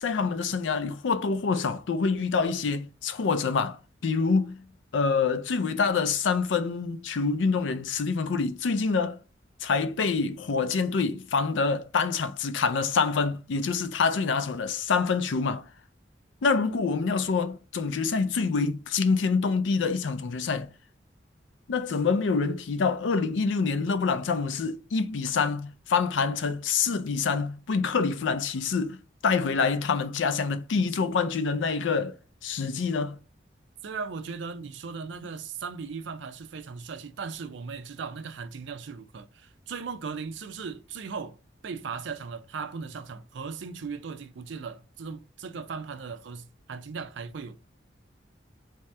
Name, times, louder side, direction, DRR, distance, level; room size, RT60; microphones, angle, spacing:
voice 1, 0.0-3.8 4.0-4.6 4.9-9.2 9.6-15.7 16.4-20.7 21.7-32.1 32.4-33.2, left 5 dB, 90° left, 0.4 m, -26 dB
voice 2, 33.8-41.4 41.6-47.6, right 5 dB, 80° right, 0.4 m, -37 dB
3.4 x 2.8 x 3.2 m
head